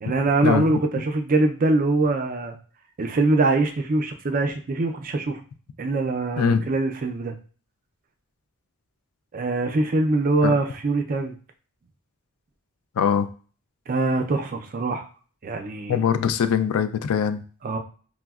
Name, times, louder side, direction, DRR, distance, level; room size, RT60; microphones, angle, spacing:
voice 1, 0.0-2.6 3.0-5.4 5.8-7.3 9.3-11.4 13.9-15.1 15.4-16.0 17.6-17.8, right 2 dB, 40° right, 5 dB, 0.4 m, -23 dB
voice 2, 6.4-6.7 10.4-10.5 13.0-13.3 15.9-17.4, left 7 dB, 75° left, 10 dB, 0.3 m, -22 dB
4.9 x 2.0 x 2.3 m, 0.40 s
head